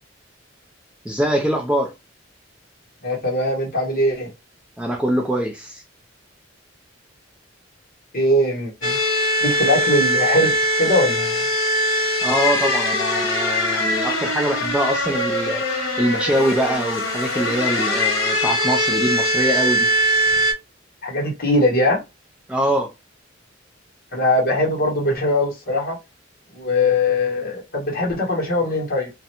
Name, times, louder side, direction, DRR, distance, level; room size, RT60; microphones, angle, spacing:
voice 1, 1.0-1.9 4.8-5.8 12.2-19.9 22.5-22.9, right 1 dB, 5° right, 0.4 m, -23 dB
voice 2, 3.0-4.3 8.1-9.0 9.4-11.5 21.0-22.0 24.1-26.0 26.5-29.1, left 1 dB, 50° left, 1.2 m, -21 dB
sound 1, 8.8-20.5, equal, 75° left, 1.1 m, -21 dB
2.5 x 2.1 x 2.8 m
head